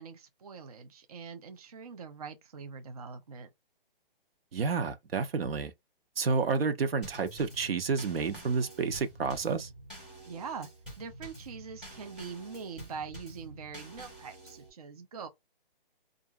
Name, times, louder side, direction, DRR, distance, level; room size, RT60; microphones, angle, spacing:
voice 1, 0.0-3.5 10.3-10.7 11.0-15.3, right 5 dB, 40° right, 0.5 m, -43 dB
voice 2, 4.5-5.7 6.2-9.7, right 5 dB, 85° right, 0.8 m, -30 dB
Drum kit / Snare drum / Bass drum, 7.0-14.7, right 1 dB, ahead, 1.2 m, -48 dB
2.8 x 2.5 x 2.3 m
hypercardioid pair, 170°, 29 cm